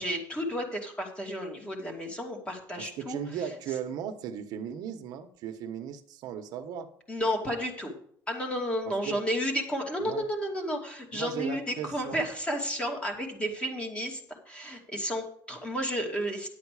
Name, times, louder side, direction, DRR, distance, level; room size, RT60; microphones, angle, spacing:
voice 1, 0.0-3.2 7.1-7.9 8.3-16.5, equal, 15° left, 2 dB, 2.6 m, -32 dB
voice 2, 2.8-6.9 8.8-9.2 10.0-10.2 11.1-12.3, right 8 dB, 60° right, 7 dB, 1.1 m, -37 dB
10.5 x 8.3 x 4.9 m, 0.62 s
cardioid pair, 145°, 8 cm